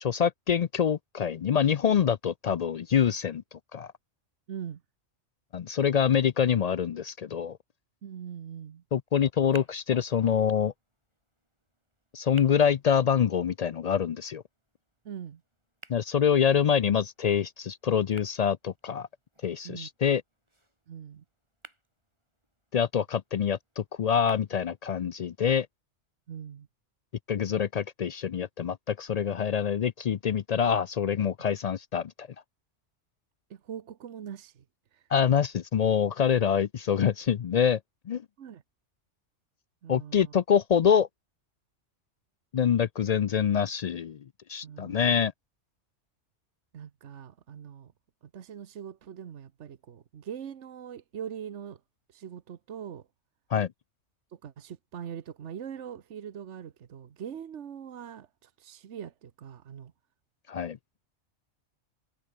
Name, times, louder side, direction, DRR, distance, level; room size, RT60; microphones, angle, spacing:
voice 1, 0.0-3.4 3.7-3.9 5.5-7.6 8.9-10.7 12.1-14.4 15.9-19.1 19.4-20.2 22.7-25.7 27.3-32.3 35.1-37.8 38.1-38.2 39.9-41.1 42.5-44.2 44.5-45.3 53.5-53.7 60.5-60.8, left 8 dB, 65° left, 0.4 m, -25 dB
voice 2, 4.5-4.8 8.0-8.8 15.0-15.4 19.6-19.9 20.9-21.2 26.3-26.7 33.5-34.6 34.9-35.0 38.4-38.6 39.8-40.3 44.6-45.2 46.7-47.9 48.2-51.8 52.1-53.1 54.3-59.9, right 8 dB, 70° right, 1.3 m, -42 dB
sound 1, 9.1-25.1, right 1 dB, 25° right, 5.2 m, -57 dB
omnidirectional pair, 1.2 m